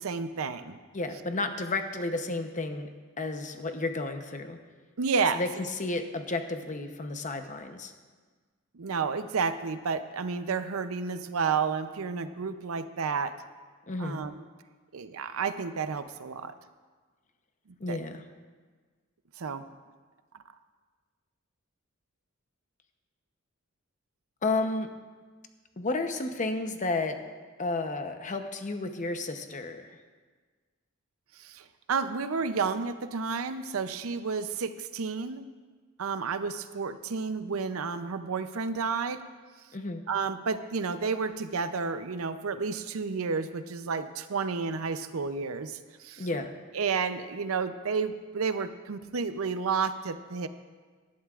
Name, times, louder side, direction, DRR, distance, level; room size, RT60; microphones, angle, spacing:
voice 1, 0.0-0.8 5.0-5.4 8.7-13.4 14.0-14.4 14.9-16.5 17.9-18.0 19.4-19.6 31.4-35.4 36.0-39.3 40.1-46.3 46.7-50.5, right 5 dB, 75° right, 11 dB, 0.6 m, -31 dB
voice 2, 0.9-2.9 3.2-4.6 5.3-7.9 13.9-14.2 17.8-18.2 24.4-24.9 25.8-27.2 27.6-30.0 39.7-40.0 46.2-46.5, left 2 dB, 35° left, 6 dB, 0.8 m, -32 dB
19.0 x 11.5 x 2.4 m, 1.5 s
head